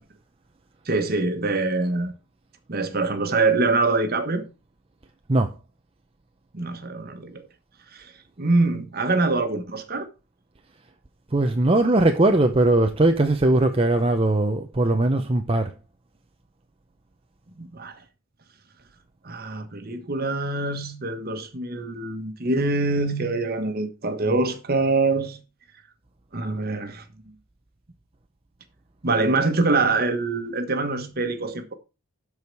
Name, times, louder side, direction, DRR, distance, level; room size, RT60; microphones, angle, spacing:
voice 1, 0.8-2.1 2.7-4.5 6.5-7.5 7.9-8.1 8.4-10.1 17.6-18.0 19.2-25.4 26.3-27.0 29.0-31.7, right 3 dB, 45° right, 1.4 m, -24 dB
voice 2, 11.3-15.7, right 2 dB, 25° right, 0.7 m, -20 dB
12.5 x 4.9 x 4.7 m
head